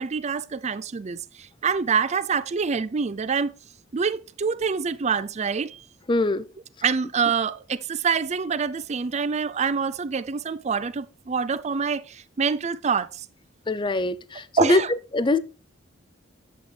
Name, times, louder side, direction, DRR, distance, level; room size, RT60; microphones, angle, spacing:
voice 1, 0.0-3.5 3.9-5.8 6.8-13.3 14.6-14.9, right 5 dB, 35° right, 0.5 m, -26 dB
voice 2, 6.1-6.4 13.7-14.8 15.1-15.4, left 2 dB, 25° left, 0.5 m, -22 dB
9.2 x 7.8 x 3.3 m
head